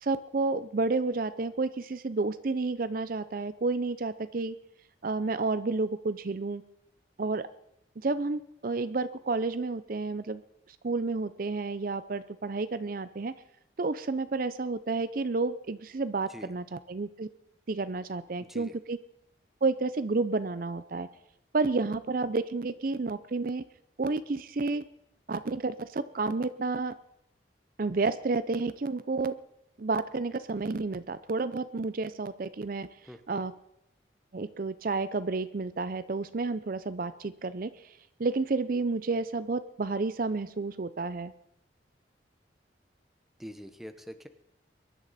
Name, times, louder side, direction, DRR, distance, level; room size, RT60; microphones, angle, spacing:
voice 1, 0.0-4.6 5.0-6.6 7.2-7.5 8.0-10.4 10.8-13.3 13.8-17.3 17.7-19.0 19.6-21.1 21.5-23.6 24.0-24.8 25.3-26.9 27.8-29.4 29.8-32.9 33.3-33.5 34.3-37.9 38.2-41.3, right 3 dB, 50° right, 13 dB, 0.5 m, -30 dB
voice 2, 33.0-33.5 43.4-44.3, equal, ahead, 8 dB, 0.9 m, -45 dB
23.0 x 11.0 x 4.2 m, 0.79 s
head